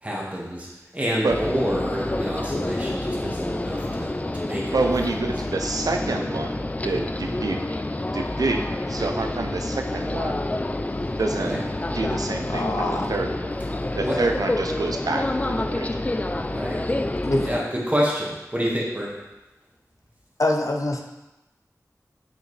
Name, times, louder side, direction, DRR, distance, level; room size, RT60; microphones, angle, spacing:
voice 1, 0.0-4.9 5.3-5.4 11.3-11.6 13.6-14.2 16.4-16.8 17.4-19.1, equal, 25° right, -4 dB, 1.6 m, -28 dB
sound 1, 1.3-17.6, left 2 dB, 25° left, 0.3 m, -28 dB
voice 2, 4.7-7.6 8.1-8.6 8.9-10.4 11.2-11.6 11.9-13.3 14.0-16.0, right 3 dB, 80° right, 4 dB, 0.5 m, -27 dB
voice 3, 12.5-13.1 17.2-17.4 20.4-21.0, left 1 dB, 60° left, 2 dB, 0.7 m, -24 dB
6.6 x 5.0 x 3.2 m, 0.99 s
wide cardioid pair, 65°, 6 cm